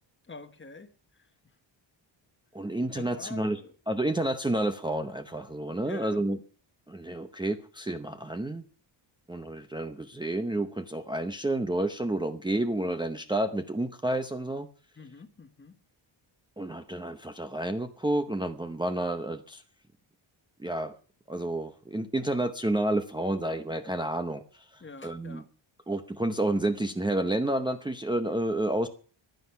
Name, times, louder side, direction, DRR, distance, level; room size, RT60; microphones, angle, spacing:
voice 1, 0.3-0.9 1.2-1.3 2.9-3.7 5.8-6.2 15.0-15.7 24.8-25.5, left 4 dB, 25° left, 1.2 m, -45 dB
voice 2, 2.5-3.6 3.9-6.4 6.9-8.6 9.3-14.7 16.6-19.6 20.6-20.9 21.3-24.4 24.7-25.4 25.9-28.9, right 1 dB, 10° right, 0.8 m, -30 dB
15.5 x 11.5 x 5.7 m
wide cardioid pair, 175°, 50 cm